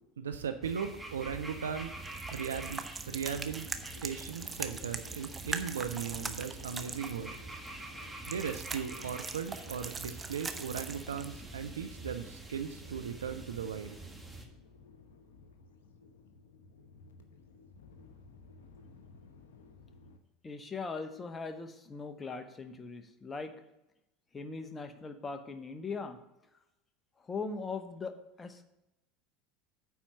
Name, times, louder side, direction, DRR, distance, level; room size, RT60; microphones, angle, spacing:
voice 1, 0.2-2.0 2.3-3.7 4.0-7.3 8.3-14.0, right 7 dB, 85° right, 9 dB, 0.5 m, -37 dB
sound 1, 0.6-14.5, right 2 dB, 5° right, 1.6 m, -46 dB
sound 2, 1.3-11.6, right 4 dB, 25° right, 0.8 m, -42 dB
sound 3, 3.6-20.2, left 4 dB, 80° left, 0.9 m, -56 dB
voice 2, 20.4-23.5 24.3-26.2 27.2-28.7, left 4 dB, 25° left, 8 dB, 1.0 m, -40 dB
9.3 x 4.4 x 6.7 m, 0.90 s
hypercardioid pair, 80°, 0 cm